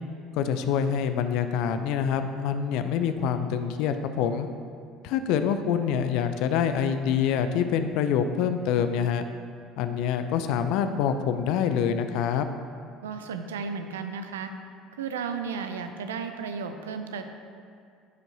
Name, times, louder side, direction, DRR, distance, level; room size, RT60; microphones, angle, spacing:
voice 1, 0.4-4.5 5.0-9.2 9.8-12.5, left 8 dB, 60° left, 9 dB, 0.5 m, -26 dB
voice 2, 13.0-14.5 15.0-17.2, right 5 dB, 75° right, 7 dB, 0.5 m, -34 dB
13.5 x 5.3 x 2.9 m, 2.3 s
figure-of-eight pair, 60°, 0 cm